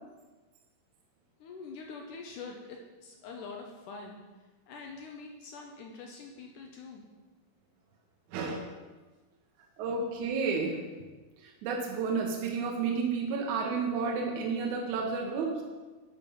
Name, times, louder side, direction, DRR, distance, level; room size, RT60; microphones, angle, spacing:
voice 1, 1.4-4.2 4.7-7.1, left 4 dB, 75° left, 1 dB, 2.1 m, -45 dB
voice 2, 8.3-8.6 9.8-10.9 11.4-15.6, right 5 dB, 70° right, 1 dB, 2.1 m, -31 dB
10.5 x 4.4 x 5.7 m, 1.2 s
omnidirectional pair, 4.2 m